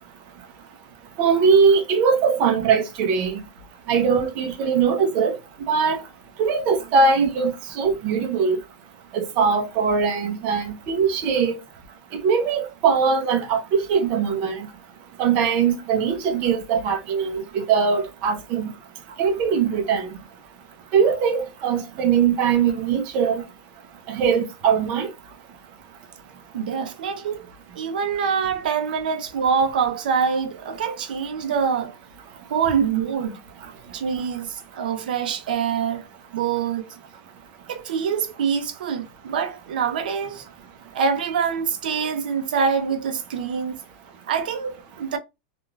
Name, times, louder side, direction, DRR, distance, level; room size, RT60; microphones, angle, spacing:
voice 1, 1.2-3.4 3.9-5.3 5.7-6.0 6.4-8.6 9.1-11.6 12.2-14.7 15.2-18.7 19.2-20.1 20.9-23.4 24.1-25.1, right 6 dB, 30° right, 0.6 m, -21 dB
voice 2, 26.5-27.5 27.7-31.9 32.5-33.4 33.9-36.1 36.3-36.8 37.7-40.5 40.9-43.8 44.3-45.2, right 6 dB, 85° right, 0.5 m, -25 dB
3.2 x 2.4 x 2.3 m
supercardioid pair, 175°, 5 cm